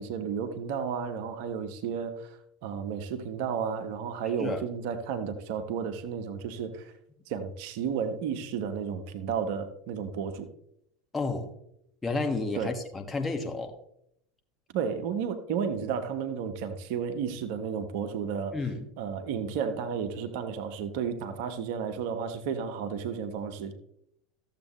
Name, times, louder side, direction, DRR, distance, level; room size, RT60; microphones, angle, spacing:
voice 1, 0.0-6.9 7.3-10.5 12.5-12.7 14.7-18.6 19.0-23.7, right 7 dB, 55° right, 8 dB, 1.1 m, -32 dB
voice 2, 11.1-11.5 12.0-13.7 18.5-18.8, left 3 dB, 15° left, 5 dB, 1.6 m, -31 dB
14.0 x 7.6 x 3.1 m, 0.76 s
figure-of-eight pair, 80°, 0 cm